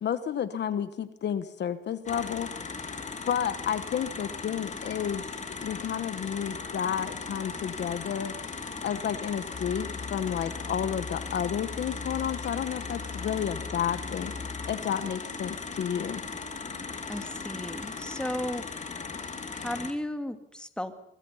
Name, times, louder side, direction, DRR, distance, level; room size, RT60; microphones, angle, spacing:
voice 1, 0.0-2.5 3.3-5.2 5.6-8.3 8.8-14.3 14.7-16.2, left 8 dB, 60° left, 12 dB, 1.2 m, -31 dB
sound 1, 2.1-19.9, left 4 dB, 35° left, 2.8 m, -38 dB
sound 2, 6.7-18.2, right 3 dB, 20° right, 2.8 m, -54 dB
sound 3, 9.5-14.8, left 4 dB, 20° left, 0.7 m, -41 dB
voice 2, 17.1-18.6 19.5-21.0, left 1 dB, 5° left, 7 dB, 2.1 m, -34 dB
24.0 x 23.0 x 5.7 m, 0.83 s
cardioid pair, 90°, 20 cm